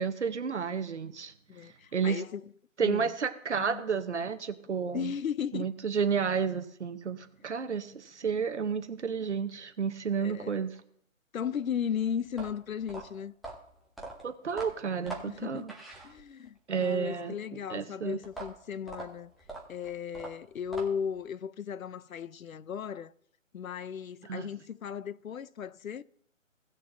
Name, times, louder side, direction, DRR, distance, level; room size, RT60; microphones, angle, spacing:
voice 1, 0.0-1.3 1.6-2.2 2.8-5.1 5.5-10.8 14.2-15.7 16.7-17.3 17.7-18.2 24.2-24.5, right 6 dB, 60° right, 0.9 m, -31 dB
voice 2, 1.5-2.5 2.8-3.1 3.6-3.8 4.9-5.7 10.2-10.6 11.3-13.3 15.3-15.7 16.0-19.3 19.7-23.1 23.5-26.0, left 8 dB, 90° left, 0.6 m, -36 dB
sound 1, 12.3-16.6 18.2-21.2, right 2 dB, ahead, 0.4 m, -43 dB
17.5 x 6.5 x 2.6 m
hypercardioid pair, 170°, 40 cm